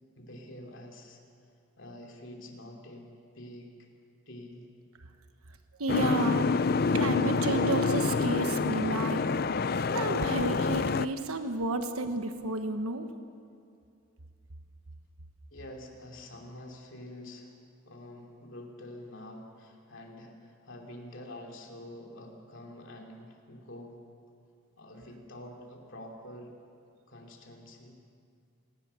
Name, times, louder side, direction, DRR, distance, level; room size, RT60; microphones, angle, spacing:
voice 1, 0.1-1.2 1.8-3.1 3.3-3.9 4.3-4.7 15.5-17.5 17.8-24.0 24.8-26.5 27.1-27.9, left 1 dB, 60° left, 1 dB, 3.0 m, -47 dB
voice 2, 5.8-9.2 9.8-13.1, right 2 dB, 85° right, 7 dB, 1.3 m, -32 dB
Boat Water vehicle, 5.9-11.0, left 4 dB, 45° left, 0.4 m, -27 dB
27.0 x 18.5 x 6.9 m, 2.4 s
head